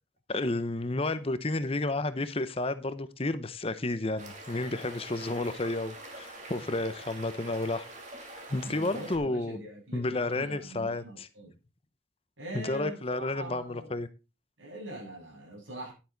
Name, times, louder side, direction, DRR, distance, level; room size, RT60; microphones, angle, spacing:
voice 1, 0.3-7.9 8.5-9.6 9.9-11.3 12.5-14.1, left 2 dB, 30° left, 13 dB, 0.7 m, -31 dB
sound 1, 4.2-9.2, right 2 dB, 40° right, 2.7 m, -45 dB
voice 2, 8.6-11.5 12.4-13.9 14.6-15.9, right 1 dB, 85° right, -1 dB, 7.5 m, -43 dB
11.0 x 9.0 x 3.9 m, 0.30 s
head